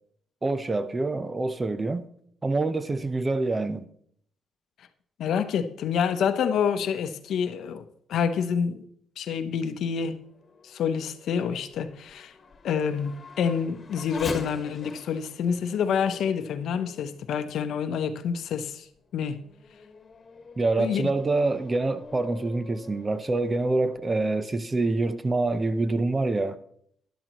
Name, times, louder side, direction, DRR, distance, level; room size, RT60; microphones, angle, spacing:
voice 1, 0.4-2.1 2.4-3.9 20.6-26.6, right 2 dB, 25° right, 0.7 m, -26 dB
voice 2, 5.2-8.8 9.2-10.2 10.6-12.3 12.6-18.8 19.1-19.4 20.8-21.1, left 7 dB, 75° left, 0.8 m, -27 dB
Race car auto racing / Accelerating revving vroom, 10.1-17.9 18.5-18.6 19.2-24.0, left 4 dB, 40° left, 1.5 m, -44 dB
12.0 x 11.5 x 3.0 m
cardioid pair, 90°, 0 cm